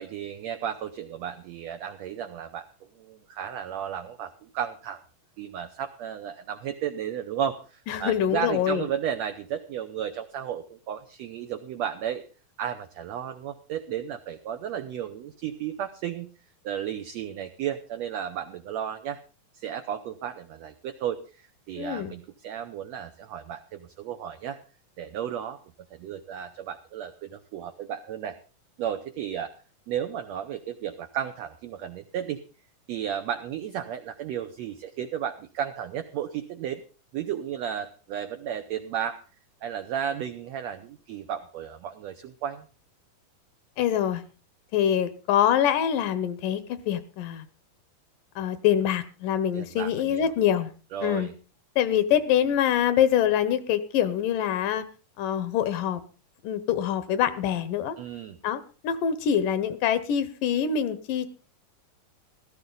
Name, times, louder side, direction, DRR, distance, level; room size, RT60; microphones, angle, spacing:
voice 1, 0.0-2.7 2.9-5.0 5.4-12.2 12.6-16.3 16.6-19.2 19.5-24.6 25.0-25.6 25.9-28.4 28.8-29.5 29.9-32.4 32.9-36.8 37.1-39.2 39.6-42.6 49.5-50.3 50.9-51.3 58.0-58.4, right 9 dB, 75° right, 8 dB, 1.6 m, -33 dB
voice 2, 7.9-8.9 21.8-22.1 43.8-44.2 44.7-47.5 48.4-50.7 51.0-51.3 51.8-54.8 55.2-56.0 56.4-58.0 58.4-61.3, left 9 dB, 75° left, 13 dB, 2.4 m, -25 dB
15.5 x 13.5 x 3.9 m, 0.35 s
omnidirectional pair, 3.9 m